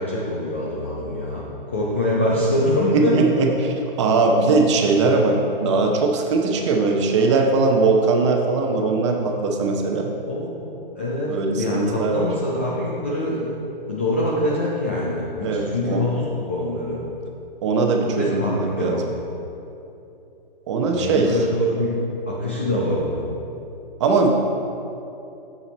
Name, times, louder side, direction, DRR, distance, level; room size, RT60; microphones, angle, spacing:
voice 1, 0.0-3.2 10.3-13.5 13.9-17.0 18.2-19.0 20.9-23.3, left 1 dB, 15° left, -6 dB, 0.3 m, -24 dB
voice 2, 2.9-3.5 4.0-10.1 11.3-12.3 15.4-16.0 17.6-19.0 20.7-21.3 24.0-24.3, right 3 dB, 30° right, 2 dB, 0.8 m, -20 dB
7.1 x 7.0 x 4.3 m, 2.8 s
hypercardioid pair, 150°, 29 cm